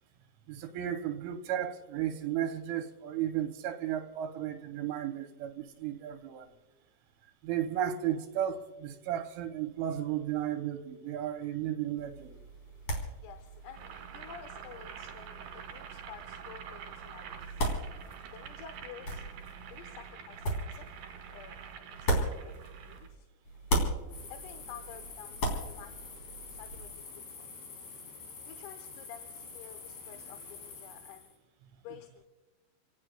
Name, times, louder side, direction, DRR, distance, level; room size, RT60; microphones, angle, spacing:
voice 1, 0.5-6.5 7.4-12.4, right 10 dB, 85° right, 3.1 m, -34 dB
sound 1, 12.0-23.2 23.4-26.9, right 1 dB, 35° left, 3.7 m, -37 dB
voice 2, 13.2-17.6 18.3-19.2 19.7-20.9 21.3-21.6 22.0-23.3 24.3-25.9 26.5-27.0 27.4-27.5 28.5-31.3 31.8-32.3, left 9 dB, 90° left, 3.7 m, -51 dB
Boiling, 13.7-23.1, right 7 dB, 60° right, 2.8 m, -47 dB
sound 2, 24.1-31.4, left 5 dB, 55° left, 4.9 m, -47 dB
29.5 x 18.0 x 2.2 m
omnidirectional pair, 5.8 m